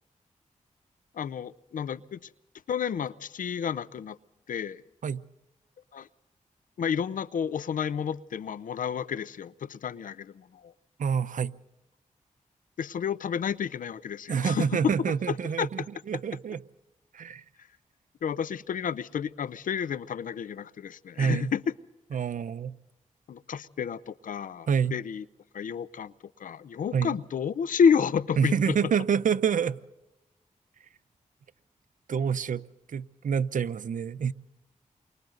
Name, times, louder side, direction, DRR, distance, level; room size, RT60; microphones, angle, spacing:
voice 1, 1.1-2.3 2.7-4.2 4.5-4.8 5.9-6.1 6.8-10.7 12.8-15.7 18.2-21.7 23.3-25.2 25.5-26.1 26.4-28.8, left 7 dB, 85° left, 0.7 m, -30 dB
voice 2, 11.0-11.5 14.3-16.6 17.1-17.4 21.2-21.5 22.1-22.8 24.7-24.9 26.9-27.2 28.4-29.8 32.1-32.6 32.9-34.3, right 7 dB, 80° right, 0.7 m, -27 dB
29.5 x 24.0 x 4.0 m
cardioid pair, 60°, 13 cm